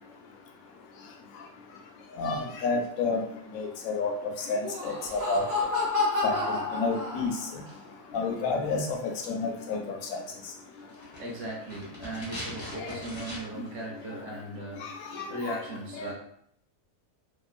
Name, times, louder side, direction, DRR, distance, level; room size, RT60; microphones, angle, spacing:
voice 1, 2.2-3.2 3.5-4.1 4.4-5.5 6.2-7.3 8.1-9.8 10.1-10.2 12.8-12.9 14.8-15.6 15.9-16.1, left 4 dB, 75° left, 2 dB, 1.0 m, -30 dB
Laughter, 4.5-7.6, left 3 dB, 35° right, 0.7 m, -30 dB
sound 1, 10.9-13.7 14.0-14.1, left 1 dB, 25° left, 0.8 m, -42 dB
voice 2, 11.2-16.1, right 1 dB, 80° right, -2 dB, 1.2 m, -38 dB
2.9 x 2.6 x 2.3 m, 0.67 s
omnidirectional pair, 1.5 m